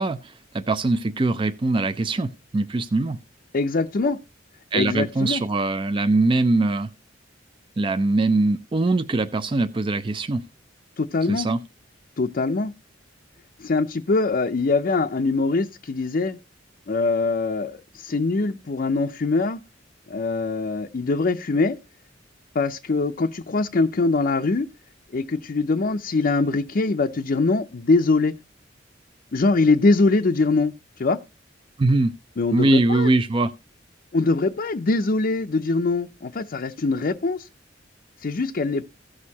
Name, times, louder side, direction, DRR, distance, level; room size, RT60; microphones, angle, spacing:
voice 1, 0.0-3.2 4.7-6.9 7.8-10.4 11.3-11.6 31.8-32.1 32.5-33.5, right 2 dB, 25° right, 0.4 m, -22 dB
voice 2, 3.5-4.2 4.7-5.4 11.0-11.5 12.2-12.7 13.6-16.4 16.9-19.6 20.1-21.8 22.5-24.7 25.1-28.3 29.3-31.2 32.4-33.1 34.1-37.5 38.2-38.9, left 3 dB, 50° left, 0.5 m, -23 dB
16.0 x 6.4 x 2.8 m
head